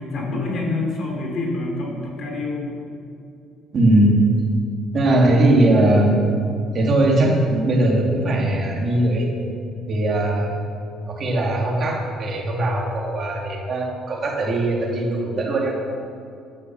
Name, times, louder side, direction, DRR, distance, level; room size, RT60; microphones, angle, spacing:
voice 1, 0.0-2.8, left 2 dB, 45° left, -1 dB, 3.1 m, -27 dB
voice 2, 3.7-4.1 4.9-6.2 6.7-9.3 9.9-10.6 11.1-15.7, right 1 dB, 35° right, -1 dB, 2.5 m, -19 dB
11.0 x 9.8 x 7.7 m, 2.6 s
cardioid pair, 165°, 0 cm